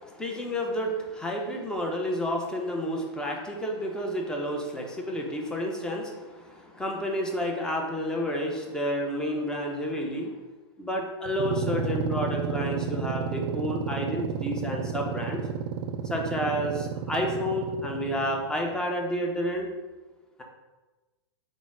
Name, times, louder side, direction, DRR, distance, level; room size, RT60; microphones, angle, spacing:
voice 1, 0.0-10.4 10.8-15.4 16.1-19.7, equal, 5° left, 0 dB, 0.5 m, -30 dB
sound 1, 11.3-18.6, right 6 dB, 60° right, 0.4 m, -32 dB
3.9 x 2.0 x 3.7 m, 1.2 s
hypercardioid pair, 130°, 14 cm